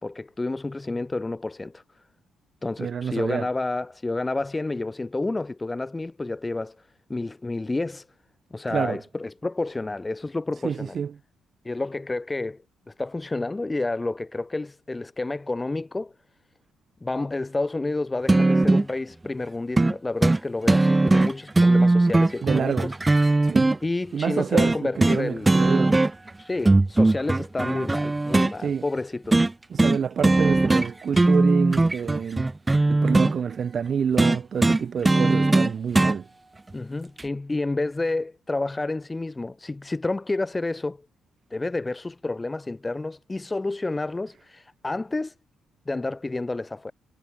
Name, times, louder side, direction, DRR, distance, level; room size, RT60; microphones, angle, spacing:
voice 1, 0.0-1.8 2.6-8.1 8.5-11.0 11.6-12.6 12.9-16.1 17.0-22.9 23.8-25.7 26.4-29.5 36.7-41.0 41.5-45.3 45.9-46.9, left 2 dB, 20° left, 3.5 m, -30 dB
voice 2, 2.8-3.5 8.7-9.0 10.6-11.1 22.4-22.9 23.4-23.7 24.1-26.0 28.6-28.8 29.7-32.5 32.9-36.3, right 7 dB, 50° right, 3.0 m, -27 dB
sound 1, 18.3-18.9 19.8-19.9 20.2-20.4 20.7-23.8 24.6-25.2 25.5-26.3 26.7-28.5 29.3-29.5 29.8-30.0 30.2-30.9 31.1-33.3 34.2-36.2 37.2-37.3, right 2 dB, 15° right, 0.4 m, -19 dB
cardioid pair, 90°, 0 cm